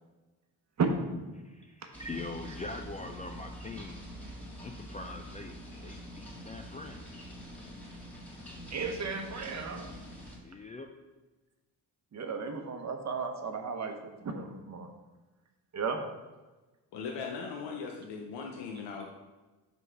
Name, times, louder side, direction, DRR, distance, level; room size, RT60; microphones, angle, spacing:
voice 1, 1.9-4.0 4.6-5.6 5.8-7.0 10.4-10.9, left 3 dB, 20° left, 4 dB, 0.4 m, -42 dB
sound 1, 1.9-10.4, equal, 5° left, 1.8 m, -45 dB
voice 2, 8.7-9.9 12.1-13.9 14.2-14.9 15.7-16.0, right 5 dB, 40° right, 5 dB, 1.0 m, -34 dB
voice 3, 16.9-19.1, left 5 dB, 80° left, 1 dB, 0.8 m, -39 dB
5.7 x 4.0 x 4.6 m, 1.2 s
cardioid pair, 75°, 41 cm